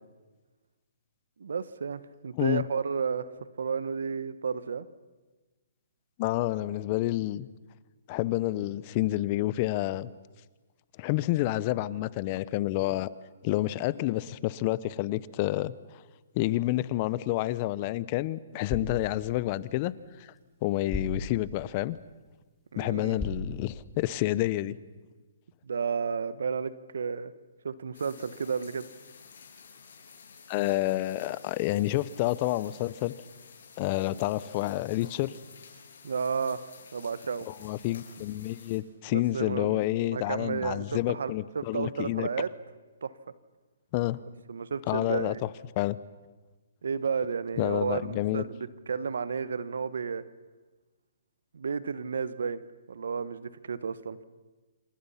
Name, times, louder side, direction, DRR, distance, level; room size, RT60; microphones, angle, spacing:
voice 1, 1.4-3.3 3.6-4.9 22.7-23.2 25.6-27.3 27.6-28.9 36.0-36.6 36.9-37.5 39.1-42.5 43.0-43.1 44.5-45.4 46.8-50.2 51.5-52.6 52.9-54.2, right 6 dB, 75° right, 15 dB, 1.3 m, -32 dB
voice 2, 6.2-7.5 8.1-10.1 11.0-13.1 13.4-15.7 16.3-19.9 20.2-20.3 20.6-22.0 22.8-24.8 30.5-33.1 33.8-35.3 37.5-42.3 43.9-44.2 44.9-45.5 45.8-46.0 47.6-48.4, left 16 dB, 35° left, 19 dB, 0.9 m, -29 dB
sound 1, 18.5-24.5, left 1 dB, 5° left, 4.2 m, -41 dB
sound 2, 27.9-38.8, left 6 dB, 70° left, 6.4 m, -52 dB
28.0 x 28.0 x 5.8 m, 1.3 s
hypercardioid pair, 140°, 0 cm